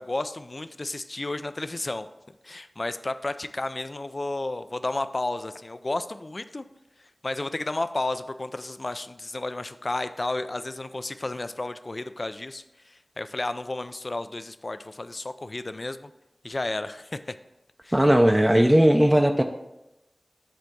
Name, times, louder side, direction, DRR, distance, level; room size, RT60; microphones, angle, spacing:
voice 1, 0.0-2.1 2.4-6.6 7.2-16.1 16.4-17.3 17.8-18.0, left 2 dB, 55° left, 11 dB, 0.4 m, -32 dB
voice 2, 17.9-19.4, equal, 15° right, 4 dB, 0.4 m, -18 dB
7.7 x 3.5 x 6.0 m, 0.93 s
wide cardioid pair, 45°, 0 cm